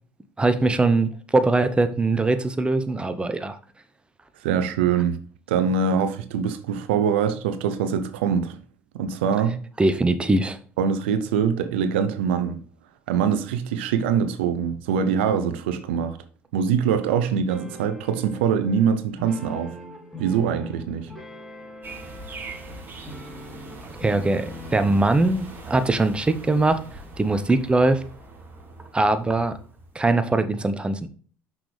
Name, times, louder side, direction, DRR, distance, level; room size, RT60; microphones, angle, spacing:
voice 1, 0.4-3.6 9.8-10.6 23.8-26.8 27.2-28.0 28.9-29.6 29.9-31.1, right 2 dB, 15° right, 0.9 m, -21 dB
voice 2, 4.4-5.2 5.5-8.6 8.9-9.6 10.8-12.6 13.1-16.2 16.5-19.7 20.2-21.1, right 7 dB, 80° right, 0.7 m, -23 dB
sound 1, 17.5-25.2, left 2 dB, ahead, 3.2 m, -42 dB
sound 2, 21.8-30.1, right 3 dB, 35° right, 3.1 m, -42 dB
6.2 x 5.9 x 3.3 m
hypercardioid pair, 65°, 6 cm